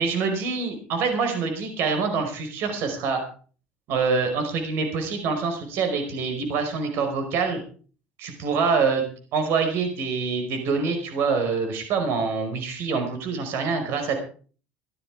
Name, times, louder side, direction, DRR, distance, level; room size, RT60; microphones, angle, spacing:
voice 1, 0.0-3.2 3.9-7.6 8.2-14.2, right 5 dB, 65° right, 6 dB, 5.0 m, -25 dB
16.0 x 12.0 x 4.8 m, 0.40 s
supercardioid pair, 105°, 4 cm